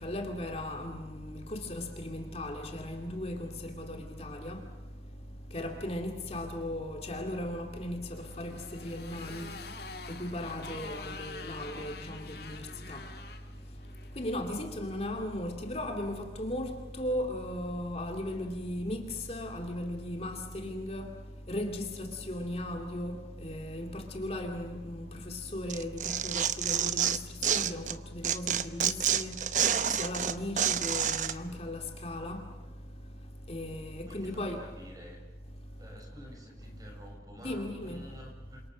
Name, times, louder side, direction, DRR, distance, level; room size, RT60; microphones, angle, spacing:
voice 1, 0.0-4.6 5.5-8.1 8.4-8.5 8.8-9.5 10.1-13.0 14.2-16.7 17.0-21.1 21.5-23.1 23.4-27.2 27.5-29.3 30.0-32.4 33.5-34.6 37.4-38.0, left 1 dB, 35° left, 4 dB, 2.4 m, -36 dB
Motorcycle, 8.1-14.5, left 4 dB, 60° left, 2.6 m, -46 dB
Tearing, 25.7-28.0 28.2-31.3, right 9 dB, 45° right, 1.0 m, -28 dB
voice 2, 34.1-35.2 35.8-38.6, equal, 20° right, 1 dB, 6.4 m, -50 dB
29.0 x 26.5 x 6.3 m, 1.3 s
head